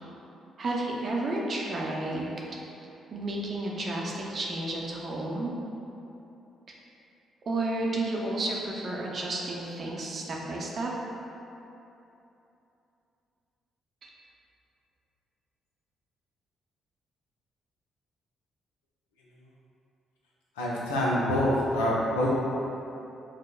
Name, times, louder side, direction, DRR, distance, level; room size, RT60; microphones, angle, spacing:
voice 1, 0.6-2.3 3.1-5.5 6.7-6.8 7.4-10.9 14.0-14.1, right 2 dB, 50° right, -2 dB, 0.5 m, -31 dB
voice 2, 20.6-22.3, left 1 dB, 85° left, -5 dB, 0.5 m, -26 dB
4.8 x 2.0 x 2.3 m, 2.9 s
hypercardioid pair, 45°, 0 cm